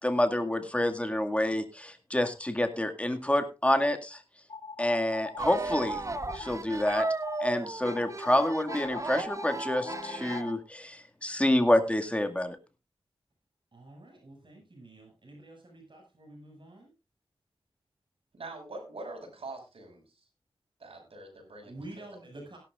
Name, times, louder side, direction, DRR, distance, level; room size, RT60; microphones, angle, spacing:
voice 1, 0.0-4.2 4.8-6.0 6.3-7.1 7.4-12.6, left 1 dB, 15° left, 6 dB, 2.1 m, -28 dB
sound 1, 4.5-5.4 5.8-6.5 6.8-7.5 7.8-10.6, left 4 dB, 65° left, 5.7 m, -41 dB
sound 2, 5.4-10.5, right 2 dB, 35° right, 0.8 m, -35 dB
voice 2, 13.7-16.9 21.6-22.6, right 1 dB, 55° right, 1 dB, 6.4 m, -48 dB
voice 3, 18.3-20.0 20.8-21.8, right 2 dB, 75° right, 2 dB, 6.0 m, -43 dB
17.5 x 11.5 x 2.5 m, 0.28 s
cardioid pair, 55°, 10 cm